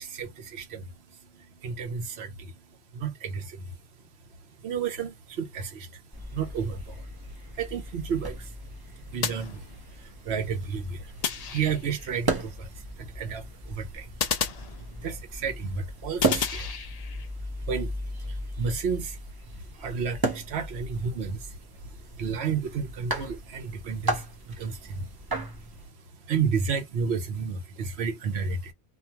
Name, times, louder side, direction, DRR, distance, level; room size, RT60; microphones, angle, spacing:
voice 1, 0.0-3.7 4.6-6.0 6.3-7.1 7.5-11.1 11.5-14.1 15.0-16.8 17.5-19.2 19.5-25.5 25.8-26.0 26.2-28.7, right 6 dB, 70° right, 1.0 m, -32 dB
playing chess, 6.1-25.9, right 2 dB, 25° right, 0.7 m, -36 dB
sound 1, 9.2-10.1 11.2-12.1 14.2-15.3 16.2-17.3, left 7 dB, 60° left, 0.4 m, -32 dB
2.5 x 2.3 x 2.8 m
omnidirectional pair, 1.1 m